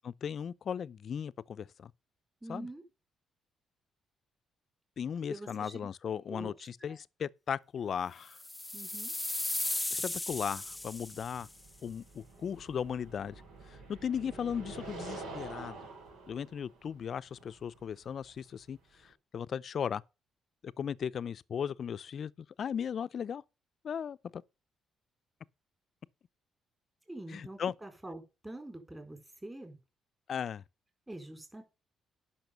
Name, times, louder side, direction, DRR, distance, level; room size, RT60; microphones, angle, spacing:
voice 1, 0.0-1.9 2.5-2.7 5.0-8.4 9.9-11.5 11.8-13.4 13.9-15.8 16.3-18.8 19.3-20.0 20.6-23.4 23.8-24.4 27.3-27.7 30.3-30.6, left 8 dB, 55° left, 0.5 m, -37 dB
voice 2, 2.4-2.8 5.3-5.9 6.3-7.0 8.7-9.1 27.1-29.8 31.1-31.6, right 1 dB, 15° right, 4.1 m, -45 dB
sound 1, 8.3-11.5, left 2 dB, 10° left, 0.6 m, -36 dB
sound 2, 10.3-19.1, right 3 dB, 90° right, 4.2 m, -48 dB
10.5 x 5.9 x 6.7 m
cardioid pair, 90°, 0 cm